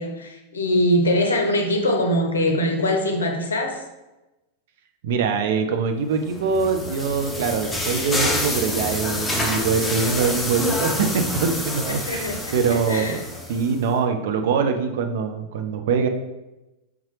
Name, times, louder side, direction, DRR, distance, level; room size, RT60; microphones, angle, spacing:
voice 1, 0.0-3.8 11.9-13.2, left 1 dB, 70° left, 3 dB, 0.6 m, -23 dB
voice 2, 5.0-13.2 13.5-16.1, right 5 dB, 55° right, 6 dB, 0.4 m, -23 dB
sound 1, 6.2-13.8, left 1 dB, 10° left, 0.5 m, -28 dB
3.5 x 2.8 x 3.1 m, 1.0 s
figure-of-eight pair, 90°, 0 cm